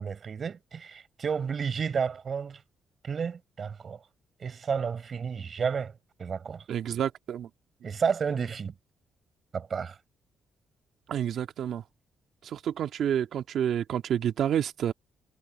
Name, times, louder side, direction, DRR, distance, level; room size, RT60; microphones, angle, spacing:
voice 1, 0.0-2.6 3.0-4.0 4.4-5.9 6.2-6.6 7.8-8.7 9.5-10.0, right 6 dB, 45° right, 4.9 m, -31 dB
voice 2, 6.7-7.5 11.1-11.8 12.4-14.9, right 9 dB, 70° right, 1.7 m, -29 dB
cardioid pair, 95°, 0 cm